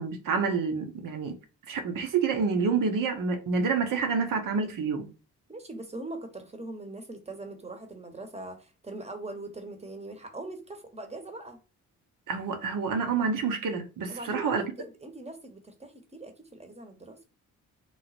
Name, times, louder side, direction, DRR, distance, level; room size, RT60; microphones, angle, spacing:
voice 1, 0.0-1.3 1.7-5.1 12.3-14.6, right 5 dB, 60° right, 0.9 m, -28 dB
voice 2, 5.5-11.6 14.1-17.2, right 2 dB, 15° right, 1.0 m, -41 dB
3.1 x 2.0 x 4.1 m
hypercardioid pair, 45°, 37 cm